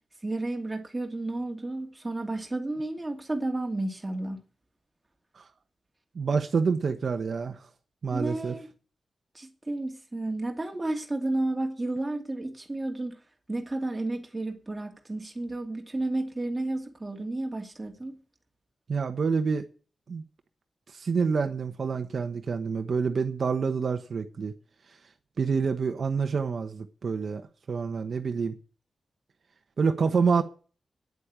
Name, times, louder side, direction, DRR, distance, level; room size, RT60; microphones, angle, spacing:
voice 1, 0.2-4.4 8.1-8.7 9.3-13.2 13.5-18.2, right 2 dB, 15° right, 2.5 m, -32 dB
voice 2, 6.1-7.7 8.0-8.6 18.9-19.6 20.1-20.2 20.9-24.5 24.9-25.0 25.4-28.5 29.8-30.4, right 5 dB, 55° right, 1.2 m, -27 dB
9.9 x 8.5 x 8.8 m
wide cardioid pair, 150°, 0 cm